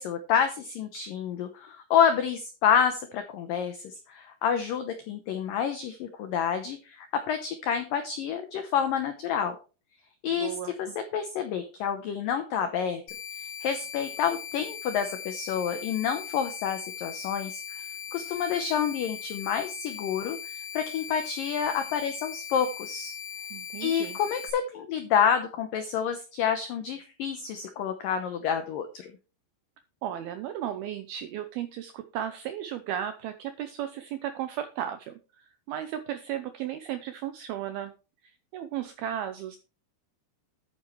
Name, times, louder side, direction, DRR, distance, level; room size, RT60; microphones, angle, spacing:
voice 1, 0.0-9.6 10.2-10.9 11.1-13.0 13.4-17.8 18.1-23.1 23.8-29.1, left 7 dB, 85° left, 8 dB, 1.9 m, -28 dB
voice 2, 10.4-10.7 23.5-24.2 30.0-37.9 38.2-39.6, right 10 dB, 90° right, 9 dB, 2.2 m, -35 dB
sound 1, 13.1-24.5, left 8 dB, 45° left, 2.7 m, -39 dB
11.0 x 9.0 x 3.2 m, 0.33 s
omnidirectional pair, 5.4 m